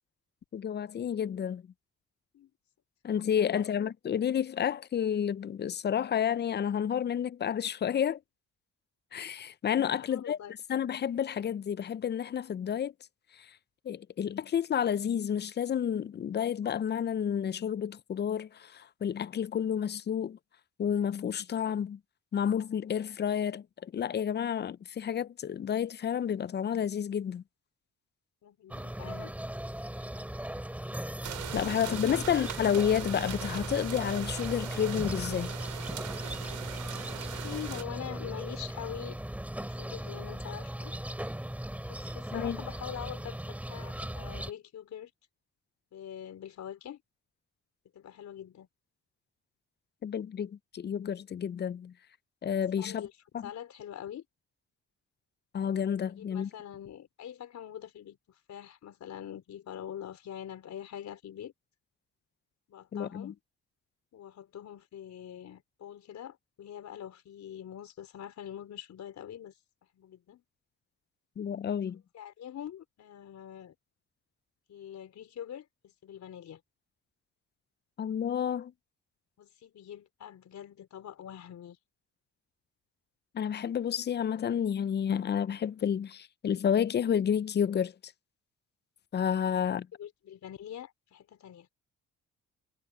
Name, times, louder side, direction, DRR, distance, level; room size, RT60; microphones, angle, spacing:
voice 1, 0.5-1.6 3.0-8.2 9.1-10.4 10.7-12.9 13.3-13.5 13.8-20.4 20.8-22.0 22.3-27.4 31.5-35.6 42.3-42.6 50.0-51.9 52.4-53.0 53.3-53.5 55.5-56.5 62.9-63.3 71.4-72.0 78.0-78.7 83.3-87.9 89.1-89.9, left 8 dB, 35° left, 0.5 m, -30 dB
voice 2, 9.8-10.5 28.4-29.3 32.0-32.4 37.1-39.2 39.6-40.9 41.9-45.1 45.9-47.0 47.9-48.7 52.7-53.1 53.4-54.2 56.1-61.5 62.7-63.4 64.1-69.5 69.9-70.4 72.1-73.7 74.7-76.6 79.4-81.8 90.0-91.7, left 10 dB, 65° left, 4.5 m, -44 dB
sound 1, 28.7-44.5, right 1 dB, 5° right, 5.1 m, -38 dB
sound 2, 31.2-37.8, right 11 dB, 70° right, 4.7 m, -41 dB
cardioid pair, 90°, 30 cm